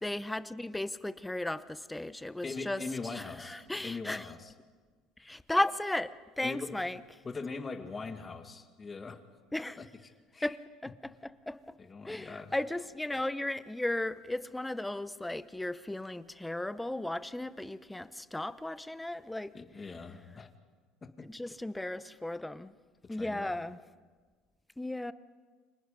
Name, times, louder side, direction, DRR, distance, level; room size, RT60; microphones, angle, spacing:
voice 1, 0.0-2.8 3.1-4.3 5.2-7.0 9.5-9.8 10.4-11.7 12.1-19.5 21.3-22.7 23.1-23.8 24.8-25.1, left 1 dB, 5° left, 0.8 m, -35 dB
voice 2, 2.4-4.5 5.2-5.4 6.4-7.0 7.2-9.2 9.8-9.9 10.3-10.5 11.8-12.5 19.5-20.5 21.0-21.5 23.0-23.5, left 4 dB, 25° left, 2.0 m, -41 dB
29.5 x 26.5 x 5.3 m
cardioid pair, 120°, 0 cm